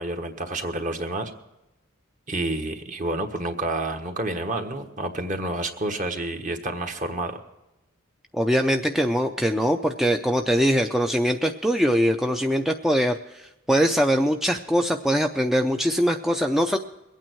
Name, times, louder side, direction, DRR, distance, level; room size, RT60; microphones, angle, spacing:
voice 1, 0.0-1.3 2.3-7.4, right 2 dB, 40° right, 5 dB, 1.4 m, -29 dB
voice 2, 8.3-16.8, equal, ahead, 4 dB, 0.4 m, -22 dB
22.5 x 9.0 x 4.5 m, 0.97 s
head